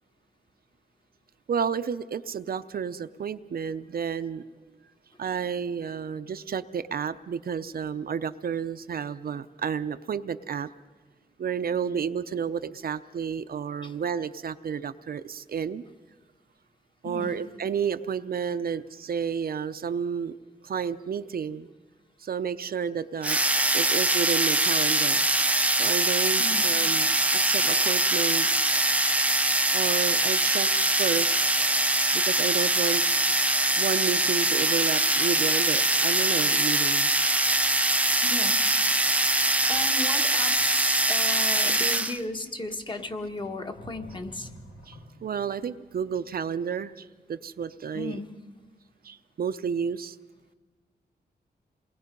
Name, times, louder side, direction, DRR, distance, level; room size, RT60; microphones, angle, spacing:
voice 1, 1.5-4.4 5.2-10.7 11.4-15.8 17.0-20.3 20.6-21.7 22.2-23.4 23.7-25.2 25.7-28.5 29.7-31.4 32.1-33.0 33.8-37.1 44.9-48.2 49.0-50.2, right 7 dB, 60° right, 10 dB, 0.6 m, -31 dB
voice 2, 17.0-17.4 26.4-26.7 38.2-38.7 39.6-44.5 47.9-48.3, left 2 dB, 30° left, 5 dB, 1.5 m, -35 dB
sound 1, 23.2-42.2, right 1 dB, 10° right, 0.6 m, -23 dB
Sink (filling or washing), 41.8-45.6, equal, 90° left, 2.3 m, -49 dB
28.0 x 20.0 x 5.3 m, 1.3 s
wide cardioid pair, 140°, 17 cm